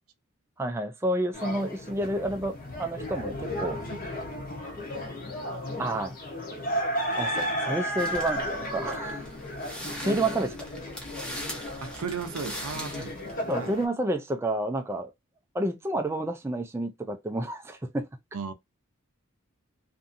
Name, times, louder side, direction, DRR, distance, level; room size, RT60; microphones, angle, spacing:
voice 1, 0.6-3.8 5.8-6.2 7.2-9.3 10.0-10.5 13.5-15.1 15.5-18.1, right 1 dB, 10° right, 0.3 m, -30 dB
sound 1, 1.3-13.9, equal, 40° left, 0.8 m, -34 dB
sound 2, 8.0-13.3, equal, 5° left, 0.7 m, -41 dB
voice 2, 11.8-13.1 13.6-13.7 18.3-18.5, right 5 dB, 90° right, 0.6 m, -35 dB
2.6 x 2.6 x 2.5 m
head